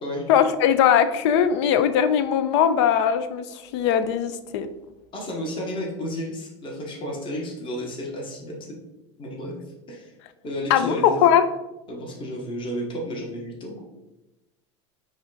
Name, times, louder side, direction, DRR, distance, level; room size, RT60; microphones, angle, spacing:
voice 1, 0.3-3.5 3.7-4.7 10.7-11.4, left 8 dB, 70° left, 12 dB, 0.4 m, -20 dB
voice 2, 5.1-8.8 9.2-9.5 9.9-10.1 10.4-11.2 11.9-13.8, equal, 35° left, -1 dB, 1.3 m, -32 dB
4.9 x 2.4 x 4.0 m, 0.98 s
hypercardioid pair, 90°, 16 cm